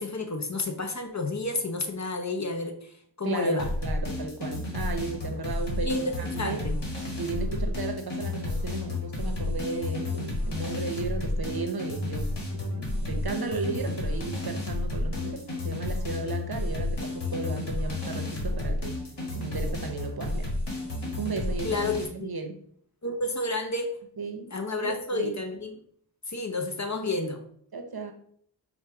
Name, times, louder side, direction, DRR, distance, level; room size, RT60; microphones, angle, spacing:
voice 1, 0.0-3.7 5.8-6.8 21.6-22.3 23.0-24.0 24.5-25.8 26.3-27.4, left 2 dB, 40° left, 5 dB, 0.7 m, -30 dB
voice 2, 3.2-6.6 7.2-19.0 19.3-20.5 21.2-21.7 22.1-22.6 24.2-24.5 24.8-25.4 27.7-28.1, right 3 dB, 55° right, 4 dB, 0.8 m, -35 dB
sound 1, 3.6-22.1, left 2 dB, 65° left, 1.5 m, -31 dB
4.4 x 2.2 x 4.6 m, 0.62 s
wide cardioid pair, 40°, 45 cm